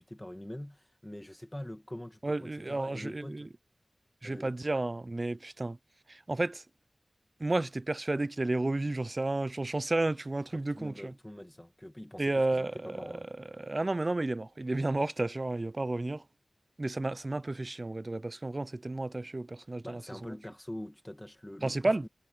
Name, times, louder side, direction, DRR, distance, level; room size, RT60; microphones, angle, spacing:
voice 1, 0.0-3.5 4.2-4.5 10.5-13.3 19.8-22.1, left 1 dB, 10° left, 2.0 m, -44 dB
voice 2, 2.2-3.5 4.2-5.8 6.1-6.6 7.4-11.1 12.2-13.0 13.5-16.2 16.8-20.4 21.6-22.0, right 2 dB, 35° right, 0.4 m, -32 dB
wide cardioid pair, 65°, 0 cm